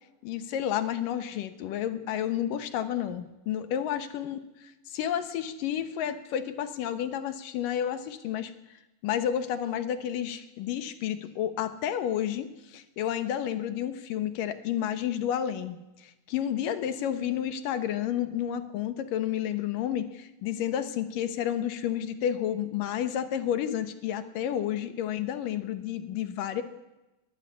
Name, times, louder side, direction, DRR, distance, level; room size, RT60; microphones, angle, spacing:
voice 1, 0.2-8.5 9.0-26.6, left 10 dB, 70° left, 10 dB, 2.6 m, -31 dB
21.5 x 12.5 x 9.8 m, 1.0 s
omnidirectional pair, 4.2 m